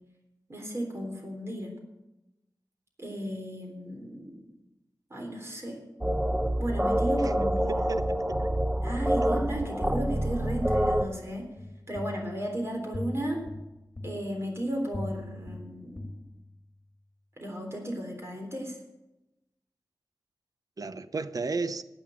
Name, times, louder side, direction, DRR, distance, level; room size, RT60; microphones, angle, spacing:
voice 1, 0.5-1.7 3.0-4.5 5.1-5.8 6.6-8.4 8.8-11.5 11.9-13.4 14.0-16.1 17.4-18.8, right 1 dB, 40° right, 3.8 m, -34 dB
sound 1, 6.0-11.1, right 1 dB, 10° right, 0.8 m, -27 dB
voice 2, 7.4-8.5 20.8-21.8, right 4 dB, 55° right, 0.8 m, -34 dB
sound 2, 11.6-16.8, left 1 dB, 30° left, 2.0 m, -41 dB
12.0 x 9.1 x 8.7 m
wide cardioid pair, 60°, 7 cm